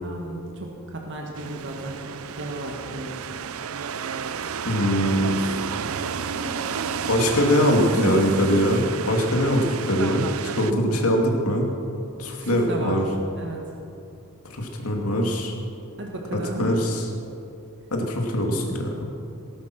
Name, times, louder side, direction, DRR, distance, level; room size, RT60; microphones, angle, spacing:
voice 1, 0.0-3.1 6.2-8.6 10.7-11.1 12.4-13.0 13.3-13.6 16.0-16.8, right 1 dB, 55° right, 0 dB, 1.7 m, -34 dB
sound 1, 1.3-10.7, right 6 dB, 75° right, 0.5 m, -31 dB
voice 2, 4.6-5.4 7.1-11.7 12.2-13.0 14.5-15.5 16.6-17.0 17.9-19.1, equal, 90° left, 1 dB, 2.4 m, -22 dB
18.5 x 12.0 x 6.1 m, 2.6 s
head